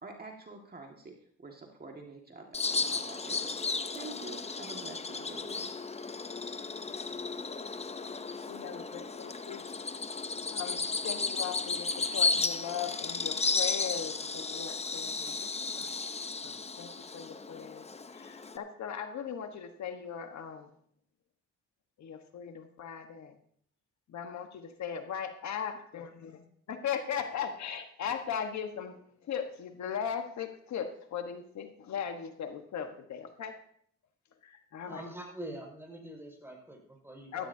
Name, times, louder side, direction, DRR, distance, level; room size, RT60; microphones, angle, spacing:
voice 1, 0.0-3.5 3.9-5.6, right 3 dB, 30° right, 1 dB, 1.9 m, -47 dB
Bird vocalization bird call bird song, 2.5-18.6, left 4 dB, 20° left, 0.8 m, -34 dB
voice 2, 8.5-9.6 10.5-16.0 16.4-17.8 18.1-20.7 22.0-23.4 24.1-26.4 26.7-33.6 34.4-35.0 37.3-37.5, left 8 dB, 65° left, 6 dB, 1.3 m, -38 dB
voice 3, 34.9-37.5, right 1 dB, 10° right, 0 dB, 5.3 m, -44 dB
15.5 x 15.0 x 2.8 m, 0.62 s
cardioid pair, 90°, 30 cm